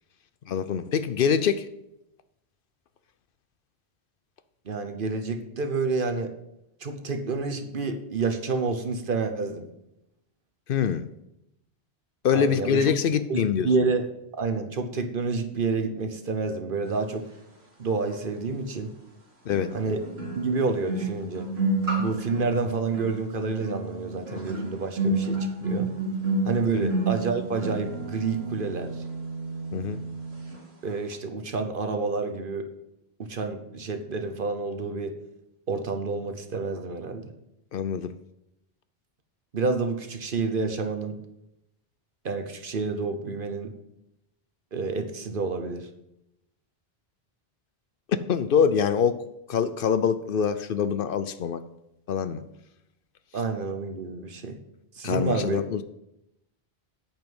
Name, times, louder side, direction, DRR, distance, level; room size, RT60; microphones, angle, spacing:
voice 1, 0.5-1.7 10.7-11.1 12.2-13.7 19.5-19.7 26.7-26.9 29.7-30.0 37.7-38.1 48.1-51.6 52.1-52.4 55.0-55.8, left 7 dB, 65° left, 13 dB, 0.7 m, -25 dB
voice 2, 4.7-6.3 6.8-9.6 12.3-12.9 13.3-14.1 14.4-17.3 17.8-18.9 19.7-20.0 20.4-21.5 22.0-25.9 26.4-29.0 30.8-32.7 33.2-35.1 35.7-37.3 39.5-41.2 42.2-43.7 44.7-45.9 53.3-54.6 55.0-55.6, right 4 dB, 55° right, 7 dB, 1.2 m, -29 dB
sound 1, 18.1-18.2 19.5-30.6 30.8-31.1, right 2 dB, 85° right, 2.2 m, -31 dB
8.7 x 5.5 x 7.9 m, 0.84 s
omnidirectional pair, 1.1 m